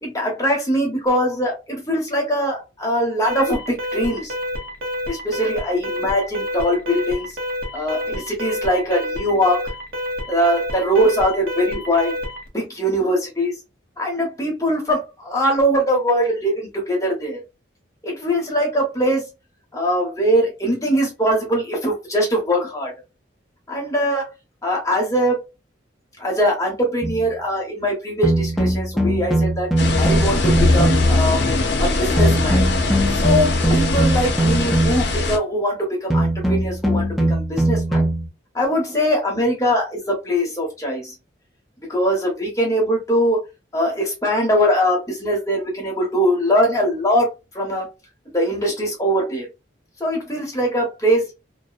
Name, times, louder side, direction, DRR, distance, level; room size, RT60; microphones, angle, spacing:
voice 1, 0.0-4.3 5.1-7.3 7.7-9.6 10.3-12.1 12.5-13.5 14.0-17.4 18.0-19.3 19.7-22.9 23.7-24.3 24.6-25.5 26.2-31.5 31.8-32.7 33.2-38.1 38.5-41.1 41.9-43.4 43.7-47.9 48.3-49.5 50.0-51.3, equal, 15° left, -1 dB, 0.8 m, -21 dB
Alarm, 3.3-12.5, left 1 dB, 50° right, 0.7 m, -28 dB
sound 1, 27.0-27.3 28.2-31.2 32.2-35.2 36.1-38.3, right 1 dB, ahead, 0.3 m, -20 dB
sound 2, 29.8-35.4, left 2 dB, 65° left, 0.6 m, -20 dB
2.5 x 2.0 x 2.3 m, 0.26 s
head